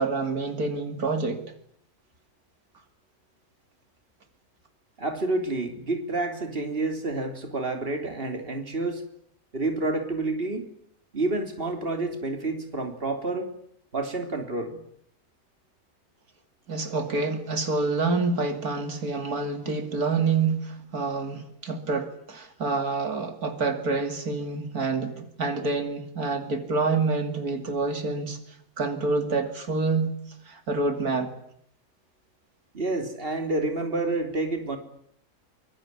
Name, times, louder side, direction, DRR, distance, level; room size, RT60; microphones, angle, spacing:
voice 1, 0.0-1.4 16.7-28.4 28.8-30.1 30.5-31.3, right 3 dB, 80° right, 3.1 m, -27 dB
voice 2, 5.0-9.0 9.5-10.7 11.1-13.5 13.9-14.8 32.7-34.8, right 2 dB, 40° right, 3.6 m, -29 dB
24.5 x 23.5 x 9.8 m
omnidirectional pair, 1.6 m